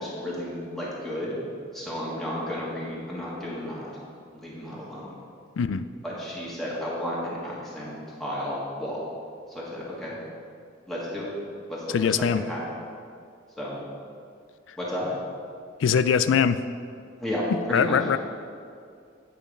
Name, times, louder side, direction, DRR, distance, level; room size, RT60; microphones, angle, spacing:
voice 1, 0.0-1.4 1.7-3.9 4.3-5.1 6.0-7.9 8.2-9.0 9.5-10.2 10.9-11.3 11.7-12.6 13.6-13.8 14.8-15.1 17.2-18.0, left 1 dB, ahead, -7 dB, 1.6 m, -32 dB
voice 2, 5.6-5.9 11.9-12.5 14.7-14.8 15.8-16.6 17.5-18.2, left 7 dB, 90° left, 13 dB, 0.4 m, -22 dB
9.0 x 5.2 x 5.1 m, 2.3 s
head